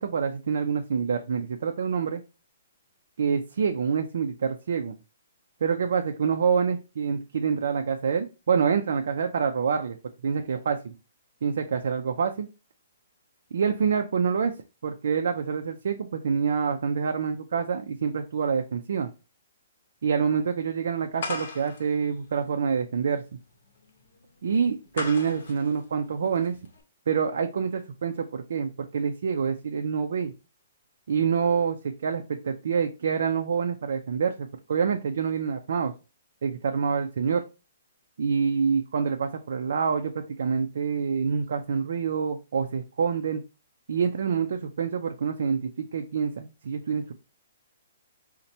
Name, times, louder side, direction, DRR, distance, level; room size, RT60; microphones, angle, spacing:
voice 1, 0.0-2.2 3.2-5.0 5.6-10.0 10.2-10.9 11.4-12.5 13.5-14.5 14.8-19.1 20.0-23.2 24.4-26.6 27.1-30.3 31.1-35.9 36.4-37.4 38.2-43.4 43.9-47.1, right 6 dB, 70° right, 5 dB, 0.3 m, -26 dB
sound 1, 21.2-26.8, left 3 dB, 65° left, 0.8 m, -39 dB
4.0 x 2.1 x 2.7 m, 0.30 s
hypercardioid pair, 160°, 0 cm